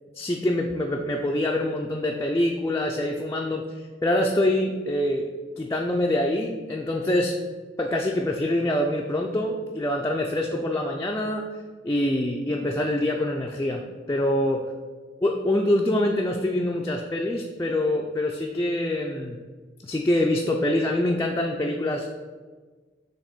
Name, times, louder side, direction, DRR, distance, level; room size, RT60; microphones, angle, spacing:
voice 1, 0.2-5.3 5.6-7.3 7.8-11.5 11.8-13.8 14.1-14.6 15.2-19.4 19.8-22.1, left 1 dB, 15° left, 0 dB, 0.4 m, -25 dB
7.2 x 2.9 x 5.1 m, 1.4 s
head